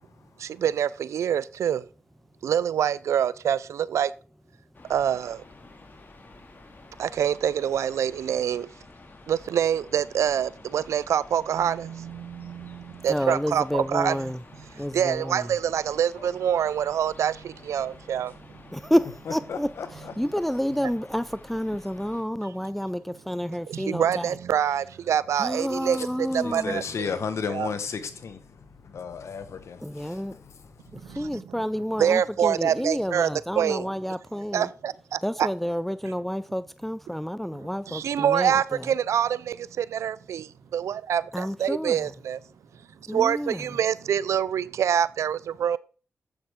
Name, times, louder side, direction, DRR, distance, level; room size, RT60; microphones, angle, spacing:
voice 1, 0.4-1.8 2.4-4.1 4.9-5.4 7.0-8.7 9.3-14.2 14.9-18.3 23.7-27.1 27.5-27.7 31.0-31.3 32.0-33.3 33.6-33.9 34.5-35.5 37.9-42.4 43.1-45.8, right 9 dB, 80° right, 0.3 m, -26 dB
sound 1, 4.7-22.2, left 3 dB, 40° left, 2.2 m, -50 dB
voice 2, 13.1-14.4 14.8-15.5 18.7-24.4 25.3-26.8 29.8-30.4 31.0-34.7 35.2-38.9 41.3-42.1 43.1-43.8, equal, 5° left, 0.5 m, -29 dB
voice 3, 19.5-20.1 26.4-30.2, left 6 dB, 70° left, 1.3 m, -33 dB
10.5 x 7.7 x 3.6 m
cardioid pair, 55°, 5 cm